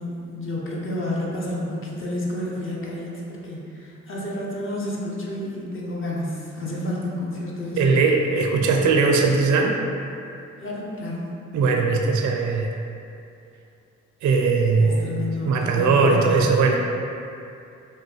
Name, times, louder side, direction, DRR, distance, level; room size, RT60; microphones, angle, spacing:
voice 1, 0.0-8.0 10.6-11.2 14.8-16.3, left 1 dB, 40° left, -4 dB, 0.7 m, -30 dB
voice 2, 7.8-9.8 11.5-12.8 14.2-15.1 15.4-16.8, right 4 dB, 65° right, 2 dB, 0.4 m, -19 dB
3.0 x 2.2 x 3.0 m, 2.6 s
supercardioid pair, 50°, 31 cm